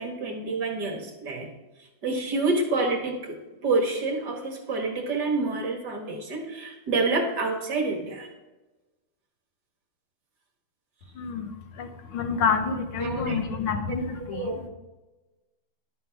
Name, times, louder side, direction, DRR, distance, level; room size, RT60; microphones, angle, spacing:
voice 1, 0.0-1.5 2.0-3.3 3.6-8.3 13.0-13.3 14.3-14.6, right 3 dB, 55° right, 3 dB, 2.0 m, -28 dB
voice 2, 11.1-14.7, left 5 dB, 90° left, 6 dB, 1.9 m, -28 dB
11.5 x 9.6 x 3.5 m, 1.1 s
omnidirectional pair, 2.2 m